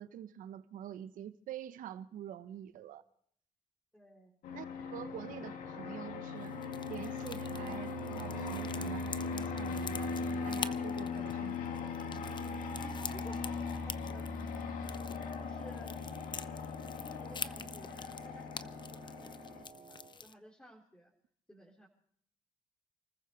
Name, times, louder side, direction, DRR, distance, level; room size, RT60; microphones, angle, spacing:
voice 1, 0.0-3.0 4.5-6.6 6.9-11.6, right 10 dB, 85° right, 1.0 m, -46 dB
voice 2, 3.9-4.4 12.8-15.0 15.4-16.0 17.0-21.1 21.5-21.9, equal, 5° left, 4.0 m, -55 dB
Fixed-wing aircraft airplane, 4.4-19.6, left 4 dB, 85° left, 2.4 m, -39 dB
sound 1, 6.4-20.3, left 5 dB, 35° left, 0.8 m, -46 dB
Wind instrument woodwind instrument, 14.8-20.2, right 5 dB, 50° right, 2.3 m, -55 dB
29.5 x 14.5 x 3.2 m
cardioid pair, 90°, 13 cm